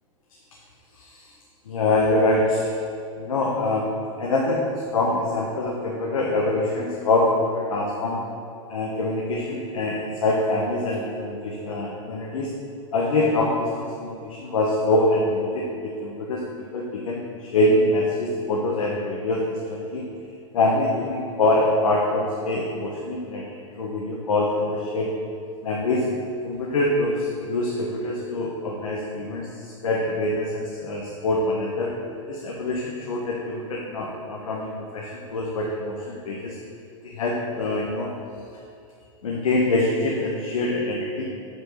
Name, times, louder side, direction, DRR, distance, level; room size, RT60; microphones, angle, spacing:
voice 1, 1.7-2.7 3.2-3.9 4.2-8.2 8.7-12.5 12.9-16.4 16.7-20.0 20.5-23.4 23.8-25.1 25.6-26.0 26.4-31.9 32.3-36.6 37.0-38.1 39.2-41.2, left 2 dB, 80° left, -2 dB, 1.1 m, -24 dB
8.3 x 4.6 x 6.4 m, 2.6 s
hypercardioid pair, 115°, 17 cm